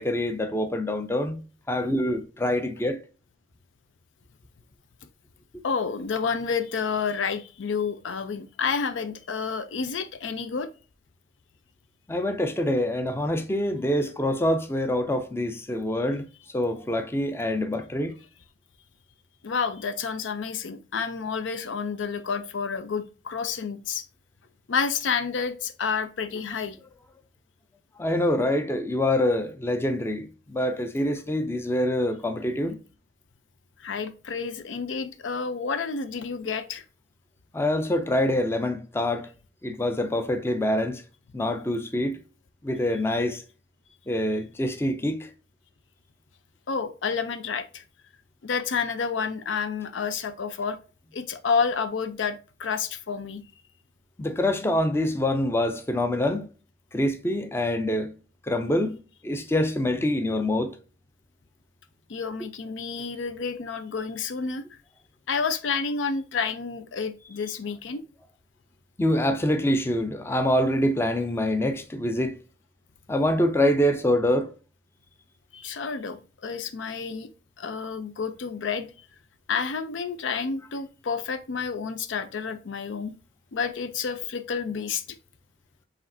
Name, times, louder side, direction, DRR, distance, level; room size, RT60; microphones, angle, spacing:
voice 1, 0.0-1.4 1.7-3.0 12.1-16.3 16.5-18.1 28.0-32.8 37.5-39.3 39.6-41.0 41.3-42.2 42.6-43.4 44.1-45.3 54.2-56.5 56.9-58.1 58.5-59.0 59.2-60.7 69.0-72.3 73.1-74.5, left 1 dB, 15° left, 0.4 m, -25 dB
voice 2, 5.6-10.7 19.4-24.0 24.7-26.8 33.8-36.8 46.7-47.8 48.4-50.8 51.1-53.4 62.1-64.6 65.3-68.0 75.5-77.3 77.6-78.9 79.5-83.1 83.5-85.0, left 5 dB, 90° left, 0.5 m, -29 dB
4.9 x 3.2 x 2.6 m
head